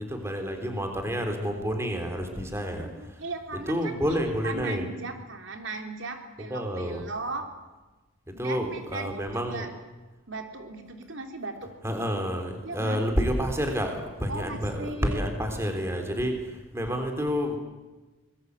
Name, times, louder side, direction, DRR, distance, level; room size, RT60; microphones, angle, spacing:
voice 1, 0.0-3.2 3.7-4.9 6.5-7.0 8.3-9.7 11.8-17.6, equal, 15° right, 5 dB, 3.5 m, -29 dB
voice 2, 2.8-7.5 8.3-9.7 10.3-11.7 12.6-13.0 14.3-15.3, right 3 dB, 65° right, 4 dB, 3.3 m, -37 dB
25.5 x 21.5 x 8.2 m, 1.2 s
head